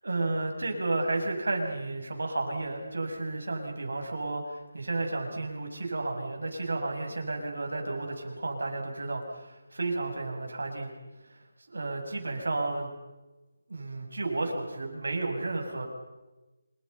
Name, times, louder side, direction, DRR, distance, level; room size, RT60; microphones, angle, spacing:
voice 1, 0.0-10.9 11.3-11.4 11.7-12.9 13.7-15.9, right 2 dB, 80° right, 2 dB, 7.5 m, -32 dB
27.5 x 27.0 x 5.7 m, 1.1 s
hypercardioid pair, 180°, 0 cm